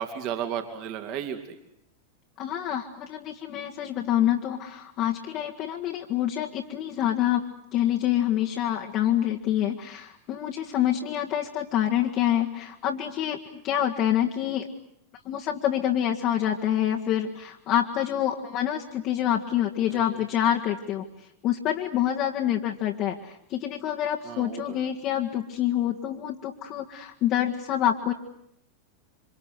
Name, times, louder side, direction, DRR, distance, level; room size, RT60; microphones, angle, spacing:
voice 1, 0.0-1.6 19.9-20.0 24.2-24.8, right 9 dB, 40° right, 6 dB, 3.0 m, -33 dB
voice 2, 2.4-7.4 7.7-14.7 15.3-21.1 21.4-28.1, left 11 dB, 40° left, 0 dB, 1.9 m, -27 dB
28.0 x 25.5 x 8.1 m, 0.74 s
figure-of-eight pair, 90°, 0 cm